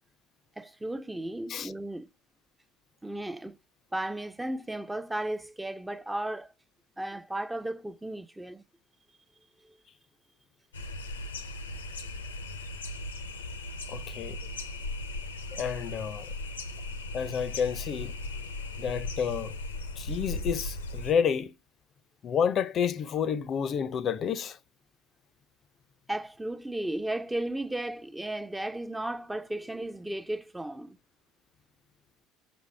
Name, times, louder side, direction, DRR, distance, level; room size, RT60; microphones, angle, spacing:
voice 1, 0.6-2.1 3.0-3.6 3.9-6.5 7.0-8.6 9.6-9.8 26.1-31.0, right 1 dB, 10° right, 0.5 m, -35 dB
sound 1, 10.7-21.1, left 2 dB, 90° left, 0.6 m, -37 dB
voice 2, 13.9-14.4 15.5-16.3 17.1-18.1 18.8-19.6 20.0-21.5 22.2-24.6, left 7 dB, 45° left, 0.5 m, -30 dB
6.1 x 5.0 x 3.2 m
hypercardioid pair, 65°, 0 cm